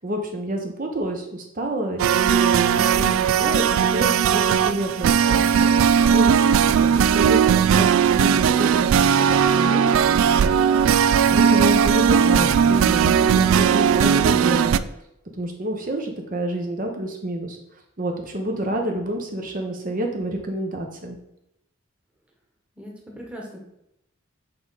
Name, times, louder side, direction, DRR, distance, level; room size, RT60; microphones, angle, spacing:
voice 1, 0.0-7.9 8.1-10.5 10.8-14.8 15.4-17.6 18.0-21.2, right 1 dB, 40° right, 3 dB, 1.0 m, -29 dB
sound 1, 2.0-14.8, right 7 dB, 75° right, 0.3 m, -18 dB
voice 2, 22.7-23.6, equal, 5° right, -2 dB, 1.3 m, -39 dB
7.6 x 3.7 x 4.1 m, 0.82 s
head